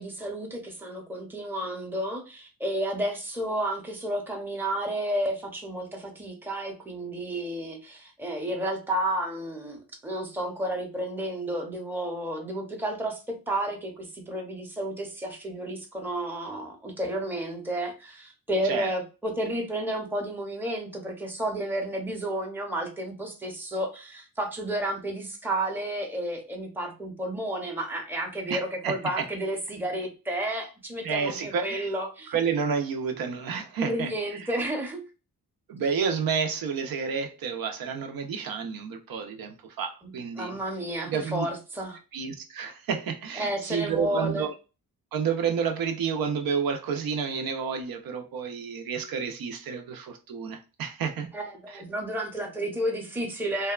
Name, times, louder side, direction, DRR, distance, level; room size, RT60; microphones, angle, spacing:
voice 1, 0.0-32.3 33.8-35.0 40.0-42.0 43.4-44.4 51.3-53.7, right 1 dB, 5° right, 0.6 m, -31 dB
voice 2, 28.5-29.2 31.0-31.9 32.3-34.5 35.7-40.6 41.1-41.5 42.1-44.5 45.1-51.3 51.7-51.8, right 6 dB, 65° right, 0.5 m, -30 dB
2.7 x 2.2 x 2.3 m
cardioid pair, 100°, 37 cm